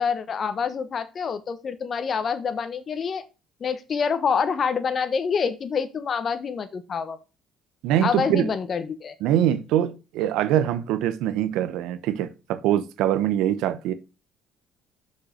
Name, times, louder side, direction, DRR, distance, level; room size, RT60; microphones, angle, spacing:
voice 1, 0.0-3.2 3.6-7.2 8.0-9.1, left 6 dB, 45° left, 1.1 m, -26 dB
voice 2, 7.8-8.5 9.2-13.9, right 11 dB, 80° right, 0.8 m, -23 dB
6.3 x 5.6 x 5.1 m
supercardioid pair, 85°, 0 cm